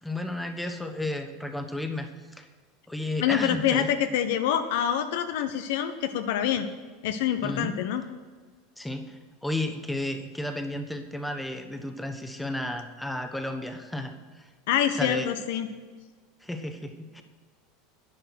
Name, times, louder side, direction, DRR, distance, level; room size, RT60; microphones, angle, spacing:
voice 1, 0.0-2.5 2.9-3.9 7.4-7.8 8.8-14.5 14.9-15.3 16.4-17.2, left 1 dB, 5° left, 6 dB, 1.2 m, -33 dB
voice 2, 3.2-6.7 7.0-8.0 14.7-15.7, left 10 dB, 60° left, 9 dB, 0.7 m, -26 dB
11.0 x 9.6 x 6.3 m, 1.4 s
figure-of-eight pair, 75°, 0 cm